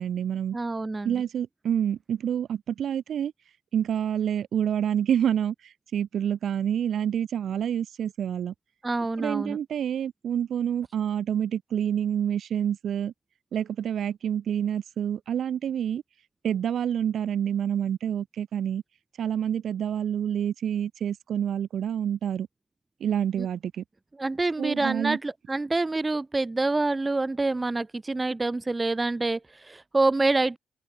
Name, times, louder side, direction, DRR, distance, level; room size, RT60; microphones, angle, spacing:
voice 1, 0.0-0.6 1.0-3.3 3.7-8.5 9.2-13.1 13.5-16.0 16.4-18.8 19.2-22.5 23.0-23.8 24.6-25.2, right 9 dB, 60° right, 4.9 m, -28 dB
voice 2, 0.5-1.2 8.8-9.6 23.4-23.5 24.2-30.6, right 2 dB, 20° right, 1.2 m, -27 dB
cardioid pair, 90°, 0 cm